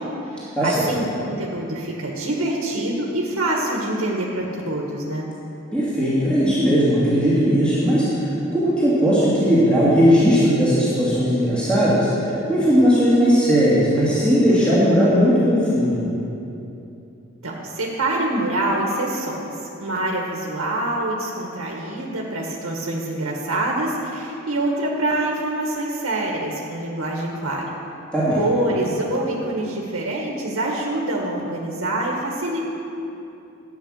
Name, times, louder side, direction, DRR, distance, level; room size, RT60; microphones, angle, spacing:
voice 1, 0.0-5.3 17.4-19.4 19.8-27.8 28.4-32.6, right 1 dB, 85° right, -2 dB, 1.6 m, -25 dB
voice 2, 5.7-16.0 28.1-28.4, equal, 5° left, -11 dB, 2.7 m, -18 dB
13.0 x 9.1 x 6.6 m, 2.9 s
head